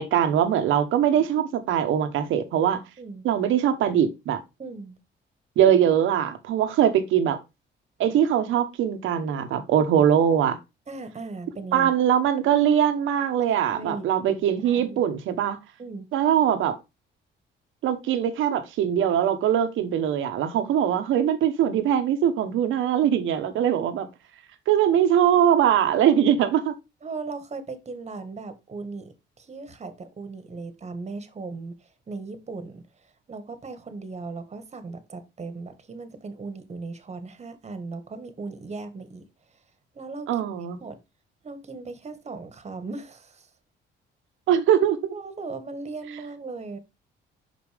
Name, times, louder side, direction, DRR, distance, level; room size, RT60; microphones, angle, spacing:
voice 1, 0.0-2.8 3.2-4.4 5.6-7.4 8.0-10.6 11.7-15.6 16.1-16.8 17.8-24.1 24.7-26.7 40.3-40.8 44.5-45.1, right 9 dB, 85° right, 1.1 m, -22 dB
voice 2, 4.6-5.0 10.9-11.9 13.5-15.0 15.8-16.1 27.0-32.8 33.3-39.2 39.9-40.4 40.8-41.0 41.4-43.5 45.1-46.8, right 3 dB, 35° right, 1.4 m, -38 dB
5.9 x 5.3 x 3.3 m
cardioid pair, 90°, 20 cm